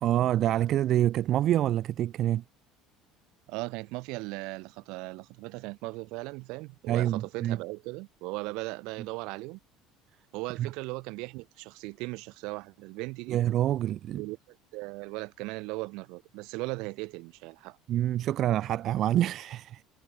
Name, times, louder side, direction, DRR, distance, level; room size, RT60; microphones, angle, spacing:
voice 1, 0.0-2.4 6.9-7.6 10.6-10.7 13.3-14.2 17.9-19.8, right 12 dB, 50° right, 0.4 m, -26 dB
voice 2, 3.5-9.6 10.3-13.4 14.1-17.8, right 25 dB, 75° right, 1.2 m, -38 dB
cardioid pair, 125°, 0 cm